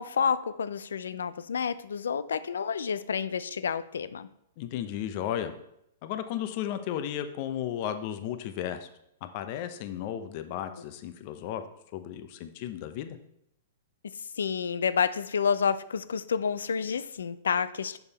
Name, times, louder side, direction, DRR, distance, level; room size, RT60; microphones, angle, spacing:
voice 1, 0.0-4.3 14.4-18.0, left 6 dB, 80° left, 14 dB, 0.4 m, -29 dB
voice 2, 4.6-5.5 6.0-8.9 9.2-11.6 11.9-13.2, left 10 dB, 50° left, 9 dB, 0.7 m, -34 dB
7.0 x 5.3 x 4.2 m, 0.76 s
hypercardioid pair, 120°, 0 cm